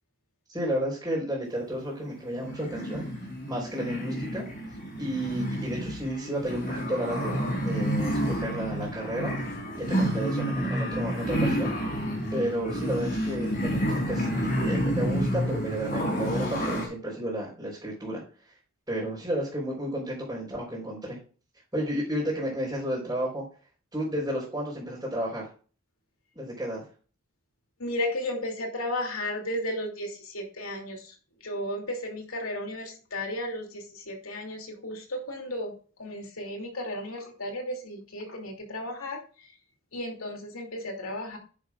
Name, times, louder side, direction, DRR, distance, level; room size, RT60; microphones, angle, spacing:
voice 1, 0.5-3.1 3.5-4.4 5.0-9.3 9.8-11.7 12.3-18.5 18.9-21.2 21.7-23.4 23.9-25.5 26.3-26.8, right 1 dB, 15° right, -8 dB, 4.3 m, -32 dB
sound 1, 2.2-16.9, equal, 40° left, 4.2 m, -29 dB
voice 2, 27.8-31.1 31.4-35.7 36.0-39.2 39.9-41.4, left 1 dB, 85° left, 2 dB, 2.8 m, -34 dB
10.5 x 9.5 x 2.5 m, 0.39 s
head